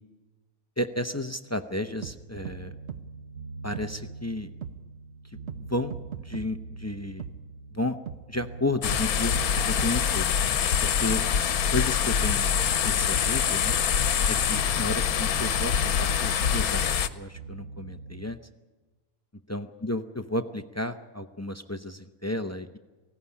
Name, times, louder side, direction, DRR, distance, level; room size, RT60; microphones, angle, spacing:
voice 1, 0.8-2.7 3.6-4.5 5.2-5.4 5.7-7.2 7.7-8.0 8.3-9.3 9.6-10.3 10.8-11.2 11.7-12.5 12.8-13.8 14.3-18.4 19.5-22.8, left 1 dB, 25° left, 8 dB, 0.3 m, -32 dB
sound 1, 1.8-18.3, right 3 dB, 80° right, 3.3 m, -44 dB
sound 2, 2.0-2.2 2.4-2.6 2.9-3.0 3.7-3.9 4.6-4.7 5.5-5.6 5.9-6.5 7.2-7.3 8.1-8.2 8.9-9.0 9.3-9.9, right 8 dB, 55° right, 1.0 m, -37 dB
sound 3, 8.8-17.1, left 8 dB, 85° left, 1.3 m, -25 dB
19.0 x 16.5 x 9.8 m, 1.2 s
omnidirectional pair, 1.5 m